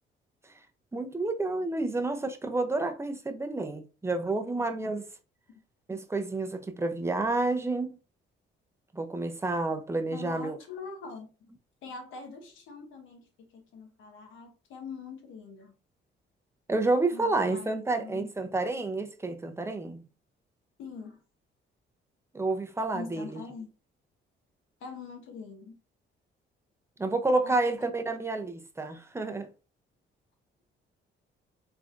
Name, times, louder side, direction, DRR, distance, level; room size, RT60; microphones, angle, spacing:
voice 1, 0.9-5.0 5.9-7.9 8.9-10.5 16.7-20.0 22.3-23.4 27.0-29.5, right 2 dB, 15° right, 0.6 m, -29 dB
voice 2, 10.1-11.5 11.8-15.7 17.1-17.7 18.0-18.3 20.8-21.2 22.9-23.7 24.8-25.8 27.4-27.9, left 4 dB, 85° left, 1.2 m, -43 dB
3.7 x 3.3 x 2.5 m
cardioid pair, 90°, 20 cm